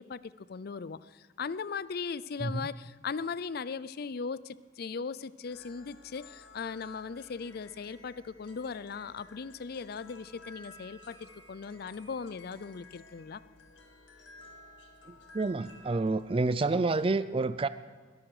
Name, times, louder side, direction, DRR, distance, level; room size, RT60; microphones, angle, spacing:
voice 1, 0.0-13.4, left 5 dB, 55° left, 17 dB, 0.5 m, -38 dB
sound 1, 5.5-17.1, left 2 dB, 75° left, 2.2 m, -55 dB
voice 2, 15.1-17.7, right 3 dB, 30° right, 14 dB, 0.4 m, -29 dB
21.0 x 12.0 x 4.9 m, 1.5 s
head